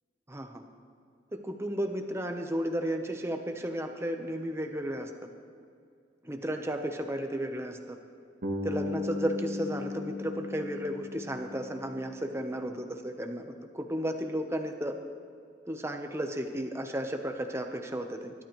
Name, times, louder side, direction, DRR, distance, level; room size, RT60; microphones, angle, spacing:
voice 1, 0.3-0.6 1.3-5.1 6.2-8.0 8.6-15.0 15.7-18.3, right 1 dB, 15° right, 5 dB, 1.0 m, -33 dB
Bass guitar, 8.4-12.5, left 2 dB, 60° right, 1.6 m, -37 dB
24.0 x 12.0 x 3.2 m, 2.4 s
head